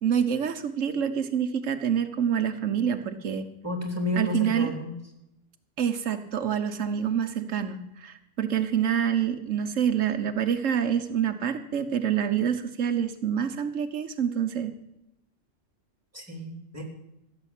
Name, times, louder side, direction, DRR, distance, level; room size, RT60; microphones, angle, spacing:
voice 1, 0.0-3.5 4.2-4.7 5.8-14.7, right 8 dB, 90° right, 7 dB, 1.4 m, -27 dB
voice 2, 3.6-4.9 16.1-16.8, left 1 dB, 10° right, 3 dB, 3.7 m, -31 dB
15.5 x 7.6 x 9.0 m, 0.83 s
omnidirectional pair, 1.3 m